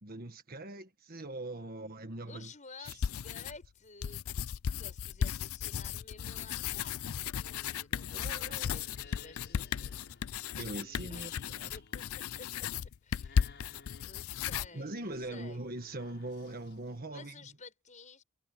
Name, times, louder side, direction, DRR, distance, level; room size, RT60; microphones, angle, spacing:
voice 1, 0.0-2.5 2.8-3.0 8.1-9.0 10.5-11.7 14.7-17.4, right 2 dB, 40° right, 1.6 m, -42 dB
voice 2, 2.3-4.3 4.7-10.0 11.1-12.7 13.0-13.5 14.0-15.6 17.1-18.2, left 4 dB, 35° left, 6.3 m, -53 dB
sound 1, 2.9-3.7 4.0-14.7, left 8 dB, 70° left, 0.4 m, -35 dB
sound 2, 7.9-17.0, left 4 dB, 50° left, 6.0 m, -58 dB
head